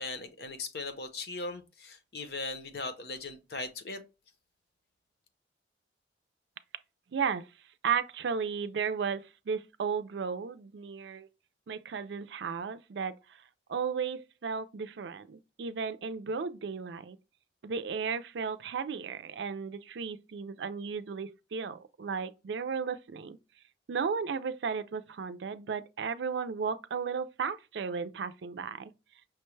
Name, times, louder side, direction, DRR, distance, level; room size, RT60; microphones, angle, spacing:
voice 1, 0.0-4.0, left 3 dB, 60° left, 0.7 m, -39 dB
voice 2, 7.1-7.5 7.8-11.3 11.7-13.4 13.7-17.2 17.6-23.4 23.9-28.9, right 6 dB, 80° right, 0.4 m, -34 dB
5.8 x 2.2 x 3.1 m
head